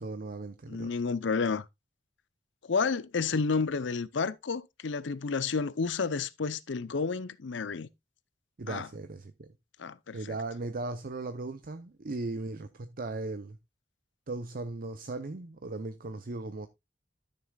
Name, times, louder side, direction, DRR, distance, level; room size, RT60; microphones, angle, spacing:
voice 1, 0.0-0.9 8.6-9.5 10.1-13.6 14.3-16.7, right 3 dB, 50° right, 0.7 m, -37 dB
voice 2, 0.7-1.6 2.6-7.9 8.7-8.9 9.8-10.3, left 4 dB, 75° left, 0.6 m, -31 dB
12.5 x 6.9 x 2.3 m
head